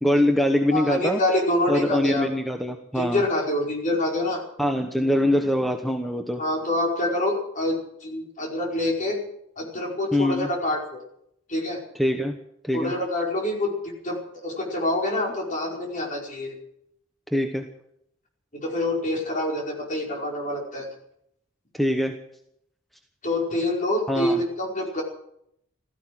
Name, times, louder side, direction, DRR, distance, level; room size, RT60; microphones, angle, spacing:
voice 1, 0.0-1.2 1.7-3.2 4.6-6.4 10.1-10.5 12.0-12.3 12.6-12.9 17.3-17.6 21.7-22.1 24.1-24.4, left 1 dB, ahead, 4 dB, 1.1 m, -23 dB
voice 2, 0.7-2.3 2.9-4.4 6.4-9.2 9.6-11.0 11.5-11.8 12.7-16.5 18.5-20.9 23.2-25.0, left 1 dB, 40° left, -1 dB, 5.1 m, -26 dB
16.5 x 14.0 x 6.2 m, 0.73 s
head